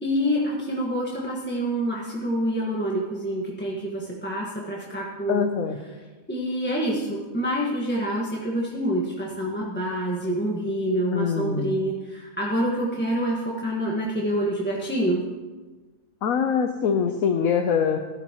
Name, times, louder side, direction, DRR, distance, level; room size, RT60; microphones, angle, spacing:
voice 1, 0.0-5.5 6.3-15.2, equal, 10° left, -4 dB, 1.4 m, -27 dB
voice 2, 5.3-5.8 11.1-11.7 16.2-18.0, left 7 dB, 80° left, 5 dB, 1.1 m, -23 dB
16.5 x 12.5 x 3.0 m, 1.3 s
omnidirectional pair, 1.4 m